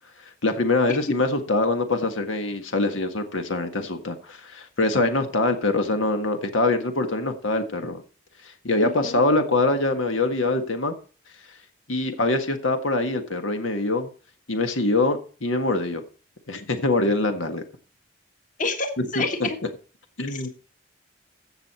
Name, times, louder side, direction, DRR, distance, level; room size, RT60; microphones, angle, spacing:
voice 1, 0.4-8.0 8.4-10.9 11.9-14.1 14.5-16.0 16.5-17.6 19.0-19.5 20.2-20.5, left 2 dB, 90° left, 1.6 m, -24 dB
voice 2, 8.8-9.2 18.6-19.6 20.3-20.5, left 3 dB, 40° left, 1.6 m, -29 dB
15.5 x 6.4 x 4.3 m
head